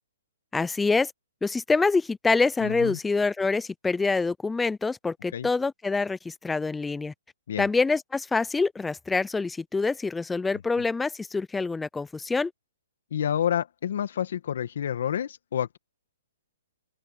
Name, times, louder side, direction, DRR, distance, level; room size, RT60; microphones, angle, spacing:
voice 1, 0.5-1.1 1.4-7.1 7.6-12.5, left 4 dB, 5° left, 0.5 m, -26 dB
voice 2, 2.6-3.0 5.3-5.5 7.5-7.7 13.1-15.8, left 9 dB, 65° left, 2.0 m, -29 dB
open air
hypercardioid pair, 135°, 0 cm